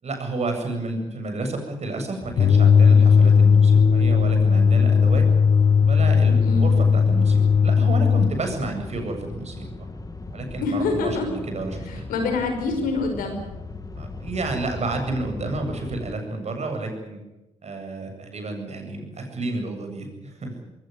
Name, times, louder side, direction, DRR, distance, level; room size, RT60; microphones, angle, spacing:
voice 1, 0.0-5.3 5.9-9.9 10.3-12.0 14.0-17.2 17.6-20.6, right 2 dB, 45° right, 4 dB, 7.9 m, -30 dB
sound 1, 2.2-16.1, left 3 dB, 25° left, 2.3 m, -37 dB
sound 2, 2.4-8.3, left 6 dB, 50° left, 1.3 m, -16 dB
voice 2, 6.4-6.7 10.6-11.3 11.9-13.4, left 3 dB, 70° left, 5 dB, 5.7 m, -26 dB
22.0 x 18.5 x 9.5 m, 0.97 s
hypercardioid pair, 45°, 15 cm